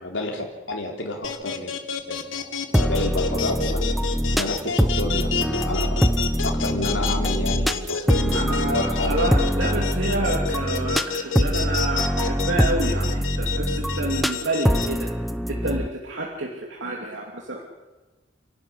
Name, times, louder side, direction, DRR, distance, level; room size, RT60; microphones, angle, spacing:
voice 1, 0.0-3.9 4.3-9.3, left 1 dB, 70° left, 0 dB, 3.8 m, -30 dB
sound 1, 1.2-14.9, left 6 dB, 85° left, 1.9 m, -29 dB
sound 2, 2.7-15.9, equal, ahead, 0.9 m, -24 dB
voice 2, 8.3-15.1 15.5-17.6, right 2 dB, 75° right, -1 dB, 2.7 m, -29 dB
29.5 x 12.5 x 9.9 m, 1.2 s
head